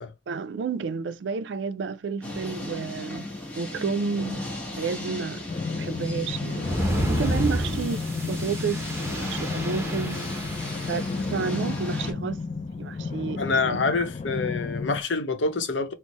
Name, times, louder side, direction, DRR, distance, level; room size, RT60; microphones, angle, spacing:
voice 1, 0.3-3.3 3.6-4.5 4.8-6.7 7.1-10.3 10.9-12.5 12.8-13.4 13.7-14.1, right 5 dB, 70° right, 0.4 m, -31 dB
sound 1, 2.2-12.1, left 1 dB, 10° left, 1.2 m, -36 dB
sound 2, 5.5-15.0, left 4 dB, 35° left, 0.3 m, -32 dB
sound 3, 6.6-11.5, right 1 dB, 15° right, 0.8 m, -31 dB
voice 2, 13.4-15.9, left 4 dB, 85° left, 0.7 m, -26 dB
4.3 x 2.0 x 2.9 m
head